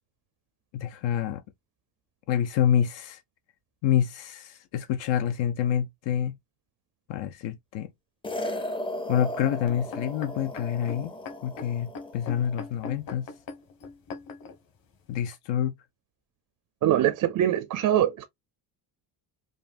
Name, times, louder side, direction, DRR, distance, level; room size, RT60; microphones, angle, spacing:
voice 1, 0.7-1.4 2.3-3.2 3.8-6.4 7.1-7.9 9.1-11.1 11.4-13.3 15.1-15.8, left 9 dB, 75° left, 0.7 m, -27 dB
sound 1, 8.2-12.7, left 1 dB, 10° left, 0.5 m, -36 dB
sound 2, 9.7-14.6 15.2-15.3, left 4 dB, 50° left, 1.4 m, -40 dB
voice 2, 16.8-18.3, right 11 dB, 45° right, 0.5 m, -23 dB
5.1 x 2.7 x 2.4 m
cardioid pair, 160°, 44 cm